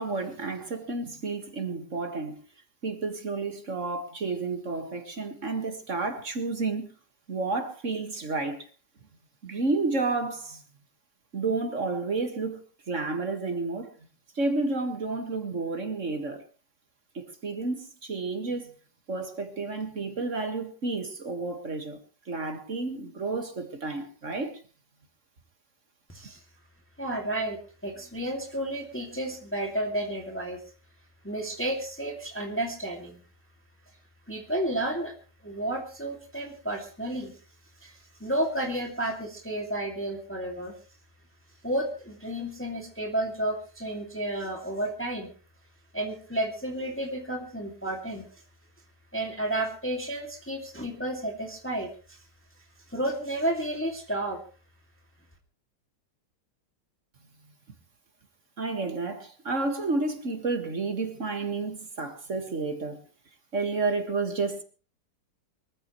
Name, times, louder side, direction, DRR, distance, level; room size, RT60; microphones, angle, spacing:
voice 1, 0.0-2.4 2.8-6.9 7.3-8.7 9.4-10.6 11.3-13.9 14.4-16.4 17.1-18.7 19.1-22.0 22.3-24.6 58.6-63.0 63.5-64.6, right 3 dB, 45° right, 2.1 m, -31 dB
voice 2, 26.1-26.4 27.0-30.6 31.2-33.2 34.3-35.1 35.4-37.4 37.8-40.7 41.6-45.3 45.9-48.4 49.1-52.2 52.9-54.4, right 1 dB, 5° left, 2.3 m, -32 dB
23.5 x 14.5 x 3.2 m
omnidirectional pair, 1.9 m